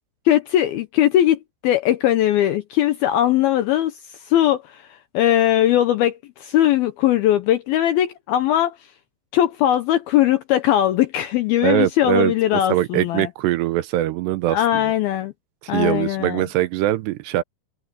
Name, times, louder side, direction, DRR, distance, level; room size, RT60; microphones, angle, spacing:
voice 1, 0.3-8.9 9.3-13.3 14.5-15.3 15.7-16.4, left 12 dB, 75° left, 2.2 m, -20 dB
voice 2, 11.6-12.3 12.7-14.8 15.7-17.4, right 14 dB, 80° right, 2.7 m, -22 dB
omnidirectional pair, 5.3 m